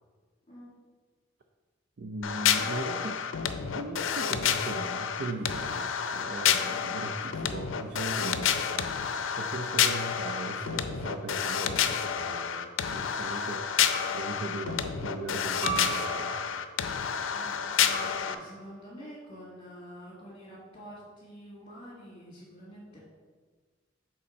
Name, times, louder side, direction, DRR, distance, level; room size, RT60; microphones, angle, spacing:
voice 1, 2.0-3.2 3.7-13.7 14.1-16.6, right 2 dB, 55° right, 4 dB, 0.5 m, -38 dB
sound 1, 2.2-18.3, left 8 dB, 90° left, 0.5 m, -29 dB
sound 2, 12.5-12.8 13.9-14.5 15.6-16.5 17.9-18.5, right 4 dB, 40° right, 1.8 m, -37 dB
voice 2, 17.3-23.0, equal, 30° left, -10 dB, 2.0 m, -47 dB
6.9 x 3.8 x 5.2 m, 1.5 s
head